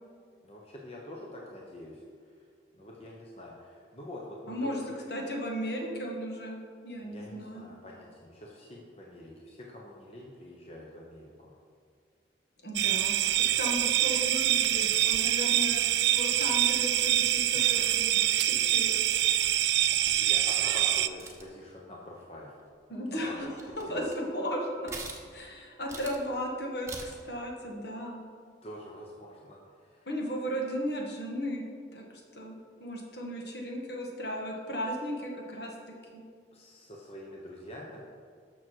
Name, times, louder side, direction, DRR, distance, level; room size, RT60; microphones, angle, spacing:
voice 1, 0.4-2.0 2.7-5.0 7.0-11.5 20.2-22.6 23.1-24.1 28.6-30.1 36.5-38.1, left 1 dB, 35° left, -3 dB, 1.1 m, -45 dB
voice 2, 4.5-4.8 5.1-6.6 6.8-7.7 12.6-13.2 13.6-15.8 16.1-19.0 22.9-23.5 23.8-24.9 25.3-28.2 30.1-31.6 31.9-32.5 32.8-35.7 36.1-36.2, equal, 60° left, -1 dB, 1.8 m, -35 dB
sound 1, 12.8-21.1, right 12 dB, 70° right, 0.4 m, -25 dB
sound 2, 19.6-20.3 21.1-21.6 22.9-23.0 23.4-24.3 24.9-25.5 25.9-26.3 26.9-27.3, right 3 dB, 15° right, 1.1 m, -43 dB
12.5 x 6.3 x 4.7 m, 2.1 s
head